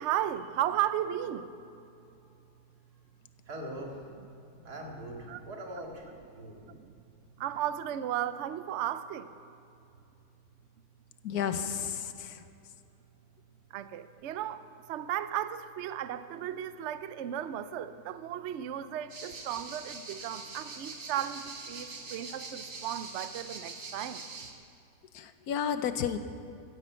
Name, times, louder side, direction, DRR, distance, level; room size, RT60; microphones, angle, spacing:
voice 1, 0.0-1.5 5.3-5.4 6.7-6.9 7.4-9.3 13.7-24.2, right 11 dB, 60° right, 12 dB, 0.8 m, -35 dB
voice 2, 3.5-4.0 4.6-6.6 11.3-11.7, right 1 dB, 80° right, 0 dB, 2.7 m, -42 dB
voice 3, 11.2-12.4 25.1-26.2, left 8 dB, 75° left, 10 dB, 1.3 m, -32 dB
sound 1, 19.1-24.5, right 3 dB, 40° right, 1.5 m, -43 dB
14.5 x 10.5 x 8.2 m, 2.6 s
omnidirectional pair, 1.6 m